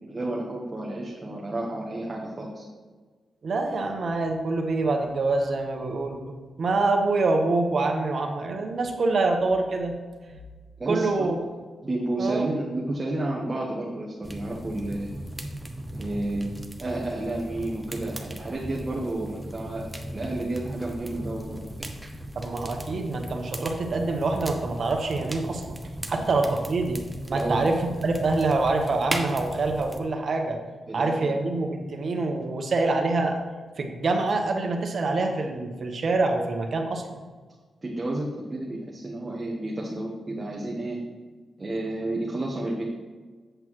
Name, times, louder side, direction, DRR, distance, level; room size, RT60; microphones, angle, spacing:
voice 1, 0.0-2.7 10.8-11.3 11.8-15.1 15.9-16.5 16.8-21.7 26.1-26.2 27.3-27.7 30.9-31.4 37.8-41.0 41.6-42.8, right 2 dB, 25° right, -3 dB, 1.0 m, -31 dB
voice 2, 3.4-6.2 6.6-9.9 10.9-11.4 12.2-12.5 22.3-25.8 26.1-27.0 27.3-30.6 30.9-33.4 33.8-37.2, right 3 dB, 50° right, 3 dB, 1.1 m, -25 dB
sound 1, 14.2-30.0, right 1 dB, 5° right, 0.7 m, -37 dB
7.9 x 7.9 x 3.1 m, 1.4 s
wide cardioid pair, 135°, 0 cm